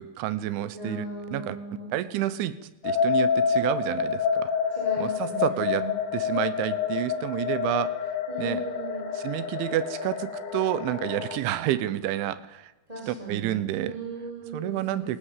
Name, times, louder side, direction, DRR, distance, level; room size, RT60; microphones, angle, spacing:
voice 1, 0.0-1.1 1.3-1.6 1.9-2.6 2.8-4.5 5.0-5.9 6.1-7.9 8.4-8.6 9.2-12.7 13.1-14.0 14.5-15.2, right 13 dB, 85° right, 15 dB, 3.5 m, -29 dB
voice 2, 0.7-1.9 4.7-5.9 8.3-9.1 12.9-15.2, right 1 dB, 5° right, -3 dB, 4.8 m, -37 dB
sound 1, 2.8-11.4, left 6 dB, 75° left, 4.6 m, -28 dB
26.0 x 19.0 x 7.5 m, 1.0 s
omnidirectional pair, 5.2 m